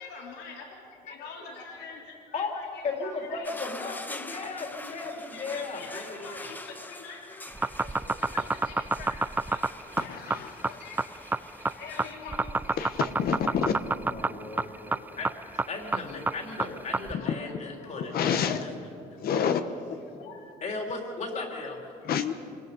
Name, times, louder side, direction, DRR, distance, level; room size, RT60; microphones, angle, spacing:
voice 1, 0.0-3.5 3.8-4.0 4.9-7.5 7.8-10.2 10.6-12.8 13.5-13.6 14.2-14.3 14.6-15.3 16.3-16.4 17.2-17.3 17.8-18.3 20.1-20.5, left 5 dB, 85° left, 0 dB, 3.3 m, -45 dB
voice 2, 2.3-6.5 14.0-18.3 18.6-18.7 20.6-21.8, left 3 dB, 45° left, 1 dB, 3.7 m, -36 dB
sound 1, 3.4-12.1, left 2 dB, 10° left, 1.0 m, -45 dB
sound 2, 7.5-17.1, right 3 dB, 10° right, 0.5 m, -28 dB
voice 3, 10.0-10.8 12.8-13.9 17.1-17.4 18.0-18.6 19.2-19.6 22.0-22.3, left 7 dB, 65° left, 8 dB, 1.2 m, -28 dB
27.0 x 20.0 x 5.5 m, 2.6 s
cardioid pair, 110°, 17 cm